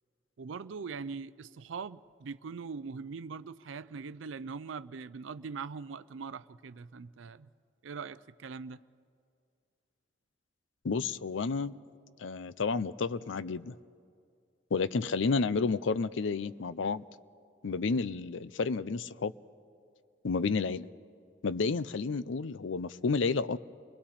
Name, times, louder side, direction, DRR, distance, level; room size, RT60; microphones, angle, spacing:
voice 1, 0.4-7.5 7.8-8.8, right 5 dB, 85° right, 0.5 m, -41 dB
voice 2, 10.8-11.8 12.2-13.8 14.7-17.0 17.6-19.3 20.2-20.9 21.4-23.6, left 4 dB, 80° left, 0.6 m, -31 dB
30.0 x 22.0 x 4.3 m
head